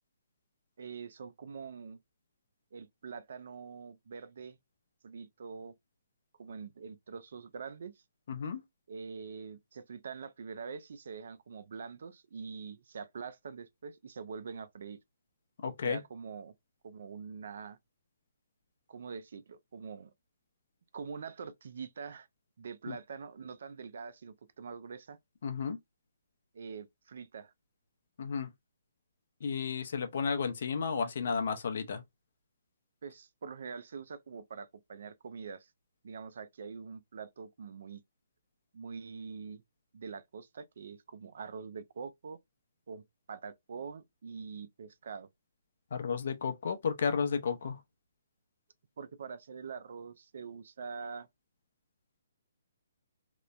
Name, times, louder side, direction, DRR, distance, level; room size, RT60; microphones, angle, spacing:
voice 1, 0.8-2.0 2.7-4.6 5.0-5.7 6.4-7.9 8.9-15.0 15.8-16.5 16.8-17.8 18.9-20.1 20.9-22.3 22.6-25.2 26.5-27.5 33.0-35.7 36.0-38.0 38.7-39.6 39.9-42.4 42.9-43.0 43.3-45.3 49.0-51.3, right 5 dB, 65° right, 0.4 m, -44 dB
voice 2, 8.3-8.6 15.6-16.0 22.9-23.0 25.4-25.8 28.2-28.5 29.4-32.0 45.9-47.8, left 6 dB, 60° left, 0.6 m, -32 dB
3.0 x 2.0 x 2.4 m
hypercardioid pair, 140°, 0 cm